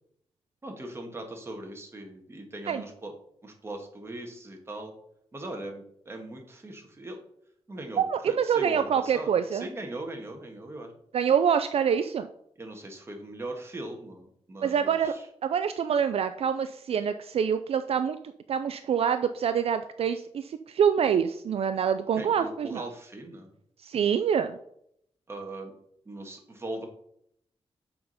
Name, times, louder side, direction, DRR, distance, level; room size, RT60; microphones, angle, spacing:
voice 1, 0.6-3.1 3.4-4.9 5.3-7.2 7.7-10.9 12.6-15.2 22.2-23.5 25.3-25.7 26.0-26.9, right 1 dB, 25° right, 3 dB, 1.6 m, -39 dB
voice 2, 8.0-9.6 11.1-12.3 14.6-15.1 15.4-18.2 18.5-22.8 23.8-24.6, right 7 dB, 65° right, 10 dB, 0.4 m, -26 dB
7.0 x 5.1 x 5.5 m, 0.70 s
wide cardioid pair, 135°, 11 cm